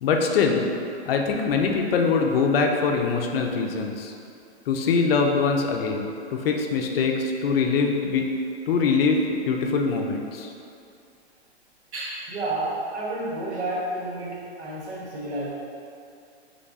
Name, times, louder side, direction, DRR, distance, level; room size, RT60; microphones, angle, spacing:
voice 1, 0.0-0.7 1.0-4.1 4.7-8.3 8.7-10.5, left 4 dB, 60° left, 2 dB, 0.5 m, -23 dB
voice 2, 11.9-15.5, right 2 dB, 80° right, -5 dB, 1.1 m, -30 dB
3.2 x 2.4 x 3.9 m, 2.5 s
hypercardioid pair, 145°, 33 cm